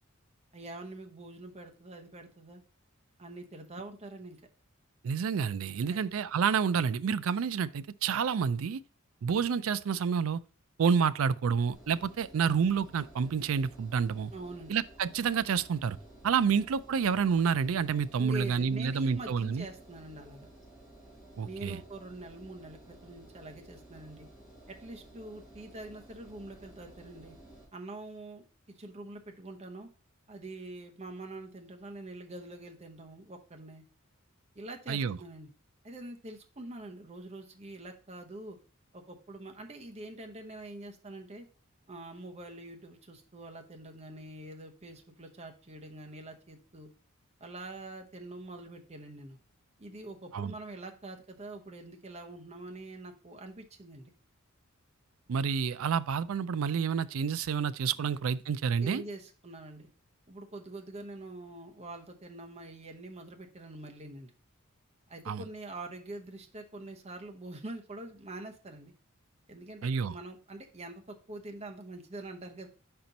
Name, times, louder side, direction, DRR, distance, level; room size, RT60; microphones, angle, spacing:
voice 1, 0.5-2.6 3.2-4.4 5.8-6.1 14.3-14.8 18.2-20.5 21.4-24.3 24.7-27.4 27.7-29.9 30.3-33.8 34.5-35.5 35.8-38.6 38.9-41.5 41.9-46.9 47.4-49.4 49.8-54.1 58.0-58.1 58.8-59.9 60.3-64.3 65.1-68.9 69.5-72.7, right 2 dB, 30° right, 0.9 m, -45 dB
voice 2, 5.0-8.8 9.2-10.4 10.8-14.3 14.7-16.0 16.2-19.6 21.4-21.8 34.9-35.2 50.3-50.5 55.3-59.0 65.3-65.4 69.8-70.1, right 6 dB, 70° right, 0.4 m, -29 dB
Engine, 11.7-27.6, right 1 dB, ahead, 3.0 m, -54 dB
5.2 x 4.4 x 5.2 m
head